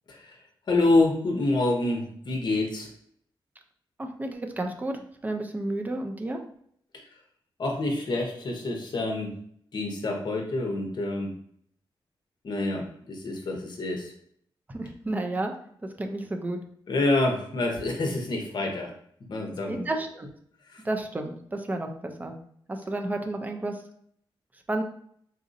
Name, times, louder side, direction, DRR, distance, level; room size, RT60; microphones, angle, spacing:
voice 1, 0.7-2.9 7.6-9.3 9.7-11.3 12.4-14.1 16.9-18.9 19.3-19.8 20.7-20.8, left 2 dB, 50° left, 1 dB, 0.8 m, -27 dB
voice 2, 4.0-6.4 14.7-15.5 16.0-16.6 19.6-20.3 20.8-22.3 22.7-23.8 24.7-24.8, right 2 dB, 20° right, 4 dB, 0.5 m, -31 dB
4.0 x 2.6 x 2.5 m, 0.65 s
wide cardioid pair, 130°, 9 cm